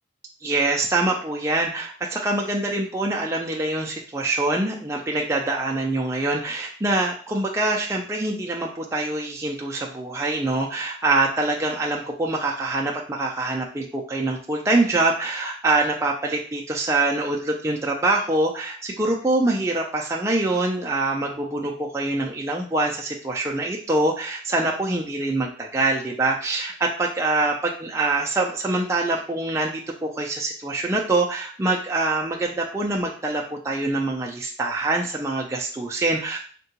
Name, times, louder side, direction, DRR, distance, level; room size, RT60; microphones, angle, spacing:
voice 1, 0.4-36.4, right 2 dB, 15° right, -1 dB, 0.3 m, -24 dB
3.6 x 2.2 x 2.8 m, 0.43 s
head